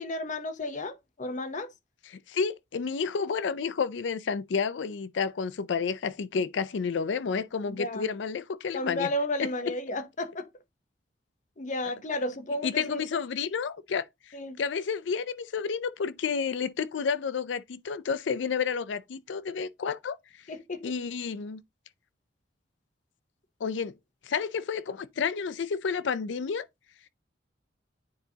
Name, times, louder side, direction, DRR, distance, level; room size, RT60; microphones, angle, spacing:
voice 1, 0.0-1.7 7.7-8.1 8.7-10.5 11.6-13.0 14.3-14.6 20.5-20.9, left 1 dB, 45° left, 0.8 m, -33 dB
voice 2, 2.1-9.1 9.4-9.7 12.6-14.1 14.6-20.2 20.8-21.6 23.6-23.9 24.2-26.7, left 6 dB, 75° left, 0.4 m, -30 dB
9.3 x 3.9 x 2.8 m
head